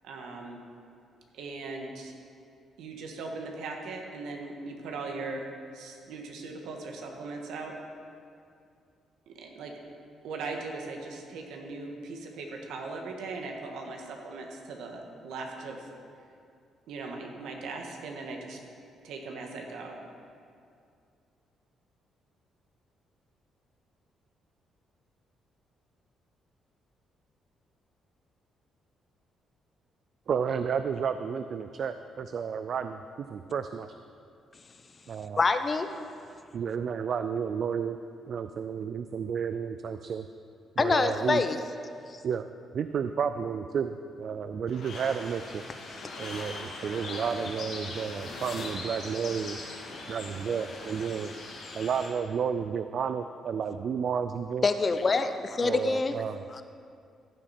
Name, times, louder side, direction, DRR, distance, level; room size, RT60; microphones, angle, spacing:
voice 1, 0.0-0.6 1.3-2.1 2.8-5.5 5.7-7.7 9.3-9.7 10.2-15.9 16.9-18.6 19.0-20.0, right 3 dB, 85° right, 1 dB, 1.5 m, -39 dB
voice 2, 30.3-33.0 33.3-33.9 35.1-35.4 36.5-38.0 38.3-40.2 40.8-41.4 42.2-42.5 42.7-45.6 46.2-49.6 50.1-51.3 51.7-54.6 55.6-56.6, right 7 dB, 60° right, 9 dB, 0.3 m, -31 dB
voice 3, 35.4-35.9 40.8-41.6 42.1-42.2 54.6-56.2 56.5-56.6, left 4 dB, 35° left, 9 dB, 0.6 m, -26 dB
sound 1, 44.7-51.1, left 2 dB, 85° left, 2.4 m, -43 dB
sound 2, 44.9-52.1, left 3 dB, 60° left, 2.5 m, -42 dB
15.0 x 7.4 x 4.3 m, 2.4 s
cardioid pair, 90°, 0 cm